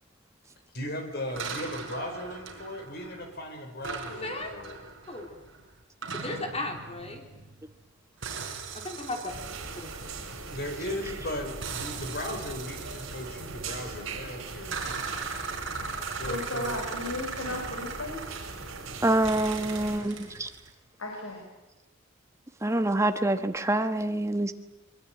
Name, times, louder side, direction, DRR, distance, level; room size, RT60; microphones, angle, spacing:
voice 1, 0.7-4.8 10.4-15.1 16.1-16.8 20.0-20.5, left 1 dB, 50° left, 6 dB, 4.9 m, -37 dB
sound 1, 1.4-3.4 3.8-7.8 8.2-11.0 11.6-14.1 14.7-18.9 19.2-20.7, right 5 dB, 60° right, 4.8 m, -39 dB
voice 2, 6.1-7.2 8.8-9.3, left 2 dB, 30° left, 3 dB, 3.3 m, -35 dB
sound 2, 9.3-20.0, right 3 dB, 80° right, 5.4 m, -40 dB
voice 3, 16.2-18.2 21.0-21.4, left 2 dB, 80° left, 1 dB, 5.1 m, -35 dB
voice 4, 19.0-20.5 22.6-24.5, right 1 dB, 15° right, 8 dB, 1.3 m, -26 dB
23.5 x 22.5 x 9.1 m, 1.0 s
head